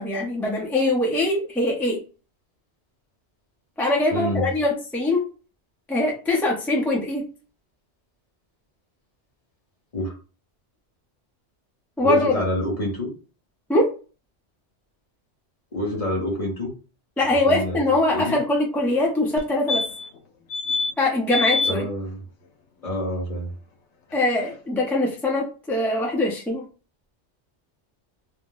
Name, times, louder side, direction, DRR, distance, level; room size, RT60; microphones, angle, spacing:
voice 1, 0.0-2.0 3.8-5.2 5.9-7.2 12.0-12.3 13.7-13.9 17.2-19.9 21.0-21.9 24.1-26.6, left 2 dB, ahead, -2 dB, 0.4 m, -22 dB
voice 2, 4.1-4.5 9.9-10.1 12.0-13.1 15.7-16.7 17.2-17.8 18.1-18.4 21.6-22.2 22.8-23.5, left 1 dB, 35° left, 0 dB, 0.9 m, -27 dB
sound 1, 19.4-19.5 19.7-20.2 20.5-20.9 21.3-21.7 24.1-24.2 24.4-24.5, left 4 dB, 80° left, 1.0 m, -25 dB
2.6 x 2.0 x 3.8 m, 0.35 s
omnidirectional pair, 1.2 m